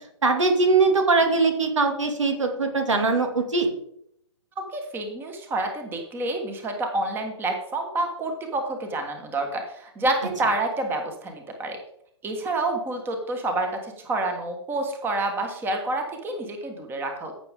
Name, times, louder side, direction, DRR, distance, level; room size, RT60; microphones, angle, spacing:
voice 1, 0.2-3.7, right 3 dB, 75° right, 5 dB, 2.4 m, -21 dB
voice 2, 4.6-11.8 12.2-17.3, right 2 dB, 15° right, 4 dB, 1.6 m, -28 dB
14.5 x 7.1 x 3.7 m, 0.71 s
figure-of-eight pair, 125°, 16 cm